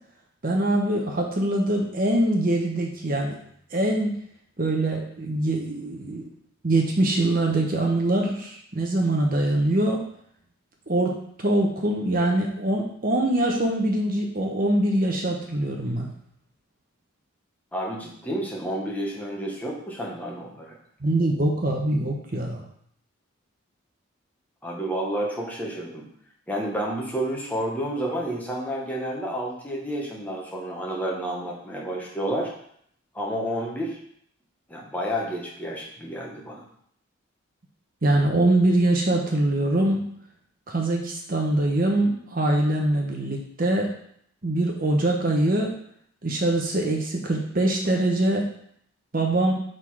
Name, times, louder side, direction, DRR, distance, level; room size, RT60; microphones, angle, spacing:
voice 1, 0.4-3.4 3.7-4.1 4.6-6.3 6.6-10.0 10.9-16.1 21.0-22.6 38.0-40.0 40.7-43.9 44.4-45.7 46.2-48.5 49.1-49.5, right 1 dB, 40° right, 1 dB, 0.9 m, -23 dB
voice 2, 17.7-20.8 24.6-26.1 26.5-32.5 33.1-34.0 34.7-36.6, right 1 dB, 5° left, -3 dB, 1.1 m, -30 dB
6.6 x 3.8 x 4.8 m, 0.67 s
head